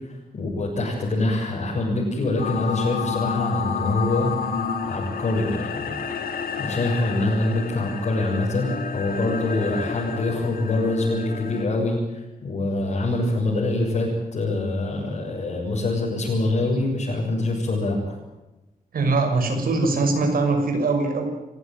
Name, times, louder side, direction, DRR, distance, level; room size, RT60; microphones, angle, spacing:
voice 1, 0.1-4.5 4.8-5.9 6.6-18.1, left 2 dB, 55° left, -3 dB, 7.1 m, -25 dB
sound 1, 2.4-11.6, left 6 dB, 85° left, 2.7 m, -30 dB
voice 2, 18.9-21.3, right 3 dB, 85° right, 5 dB, 6.4 m, -22 dB
28.0 x 16.0 x 9.4 m, 0.99 s
wide cardioid pair, 180°, 15 cm